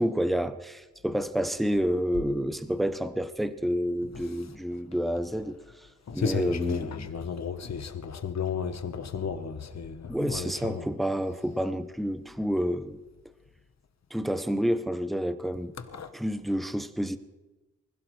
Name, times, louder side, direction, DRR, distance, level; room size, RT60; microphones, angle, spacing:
voice 1, 0.0-5.9 6.1-7.1 10.1-13.0 14.1-15.7 16.1-17.2, equal, ahead, 0.6 m, -29 dB
voice 2, 6.1-10.9 15.9-16.1, left 6 dB, 60° left, 1.2 m, -33 dB
24.5 x 16.0 x 3.2 m
wide cardioid pair, 150°, 30 cm